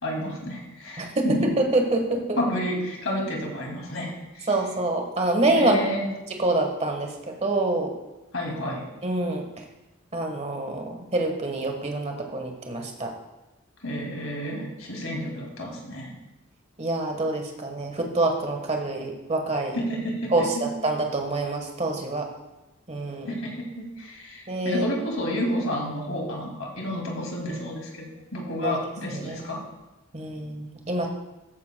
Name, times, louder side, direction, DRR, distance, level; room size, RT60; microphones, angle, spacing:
voice 1, 0.0-1.5 2.4-4.5 5.6-6.1 8.3-8.8 13.8-16.1 19.7-20.6 23.3-29.6, equal, 70° left, 0 dB, 2.5 m, -30 dB
voice 2, 1.0-2.4 4.5-5.8 6.4-7.9 9.0-9.4 10.1-13.1 16.8-19.8 20.3-22.3 22.9-23.4 24.5-24.8 28.6-28.8 29.1-29.5 30.1-31.1, right 2 dB, 30° right, 3 dB, 1.4 m, -26 dB
13.5 x 9.5 x 2.3 m, 1.0 s
head